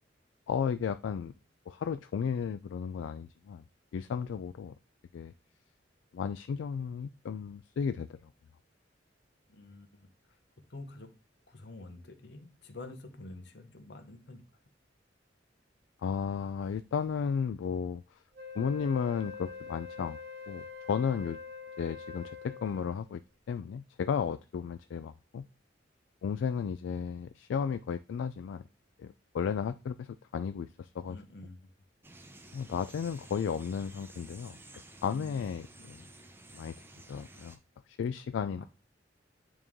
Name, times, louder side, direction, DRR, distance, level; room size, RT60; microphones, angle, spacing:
voice 1, 0.5-1.3 1.7-3.6 3.9-4.7 5.1-5.3 6.1-8.2 16.0-18.0 18.6-20.2 20.5-21.4 21.8-23.2 23.5-25.4 26.2-28.6 29.0-31.2 32.5-34.6 35.0-36.0 36.5-36.7 37.1-37.6 37.9-38.7, left 6 dB, 80° left, 12 dB, 0.3 m, -34 dB
voice 2, 9.5-10.4 10.7-11.1 11.5-14.4 31.1-31.6 35.1-35.4 35.8-36.0, left 2 dB, 65° left, 8 dB, 0.9 m, -48 dB
Wind instrument woodwind instrument, 18.3-23.1, left 5 dB, 60° right, 1.0 m, -45 dB
sound 1, 32.0-37.6, right 2 dB, 10° right, 0.6 m, -53 dB
9.0 x 3.1 x 3.6 m, 0.32 s
head